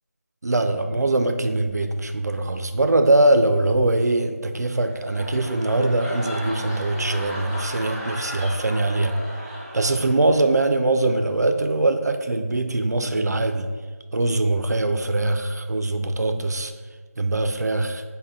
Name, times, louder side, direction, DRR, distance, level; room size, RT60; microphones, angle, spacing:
voice 1, 0.4-9.1 9.7-13.7 14.1-16.7 17.2-18.0, right 2 dB, 85° right, 7 dB, 0.4 m, -22 dB
sound 1, 4.7-10.6 11.0-11.3, equal, 15° right, 0.6 m, -35 dB
5.3 x 2.1 x 3.6 m, 1.5 s
figure-of-eight pair, 170°, 9 cm